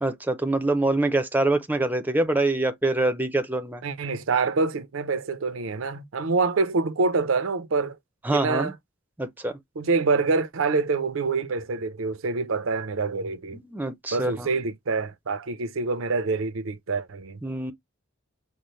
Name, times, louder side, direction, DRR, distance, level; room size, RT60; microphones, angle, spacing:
voice 1, 0.0-3.8 8.2-8.7 9.2-9.5 13.5-14.5 17.4-17.7, right 2 dB, 10° right, 0.6 m, -25 dB
voice 2, 3.8-8.0 8.3-8.7 9.8-13.6 14.1-17.4, right 4 dB, 75° right, 0.6 m, -26 dB
5.3 x 2.1 x 3.1 m
head